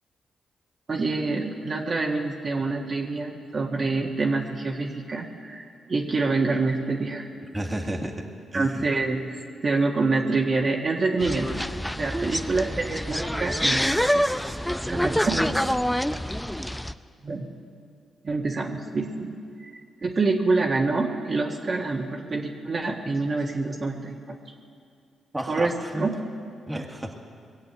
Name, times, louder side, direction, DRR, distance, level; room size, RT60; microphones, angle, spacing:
voice 1, 0.9-7.3 8.5-11.5 12.0-13.9 14.9-15.3 17.2-17.5 18.2-19.3 19.6-19.7 20.0-24.4 25.5-26.1, right 3 dB, 45° right, -1 dB, 1.7 m, -26 dB
voice 2, 7.5-8.2 8.5-8.8 11.9-12.5 13.8-15.7 16.0-16.2 25.3-26.1 26.7-27.1, right 1 dB, 20° right, 1 dB, 2.1 m, -33 dB
sound 1, 11.2-16.9, equal, 5° left, 0.6 m, -26 dB
21.5 x 7.8 x 8.2 m, 2.3 s
supercardioid pair, 50°, 0 cm